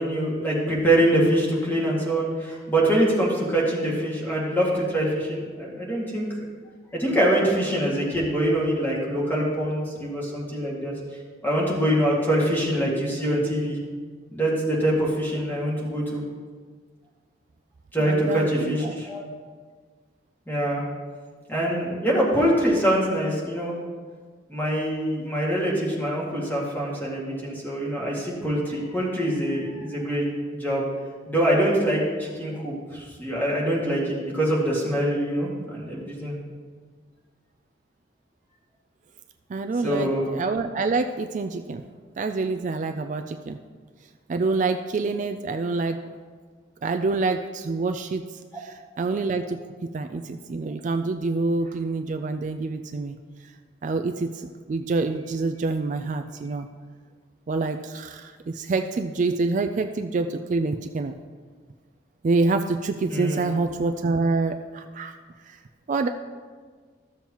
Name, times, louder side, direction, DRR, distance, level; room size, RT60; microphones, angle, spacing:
voice 1, 0.0-6.3 6.9-10.9 11.4-13.8 14.3-16.2 17.9-19.2 20.5-20.8 21.5-23.7 24.5-30.8 31.3-36.3 39.8-40.2 63.1-63.4, right 1 dB, 10° left, -5 dB, 2.0 m, -24 dB
voice 2, 18.0-19.0 39.5-41.8 42.2-43.6 44.3-46.1 46.8-48.2 48.6-53.2 53.8-56.7 57.5-61.1 62.2-65.1 65.5-65.6 65.9-66.1, right 3 dB, 45° right, 7 dB, 0.3 m, -27 dB
13.5 x 7.1 x 3.0 m, 1.5 s
head